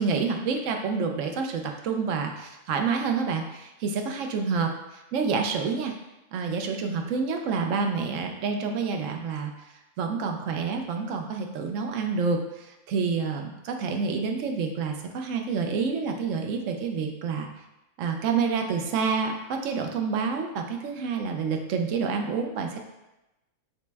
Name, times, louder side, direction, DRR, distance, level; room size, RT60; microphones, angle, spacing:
voice 1, 0.0-5.9 6.3-9.5 10.0-17.5 18.0-22.8, right 5 dB, 70° right, 4 dB, 0.9 m, -28 dB
5.8 x 2.1 x 3.3 m, 0.95 s
omnidirectional pair, 1.4 m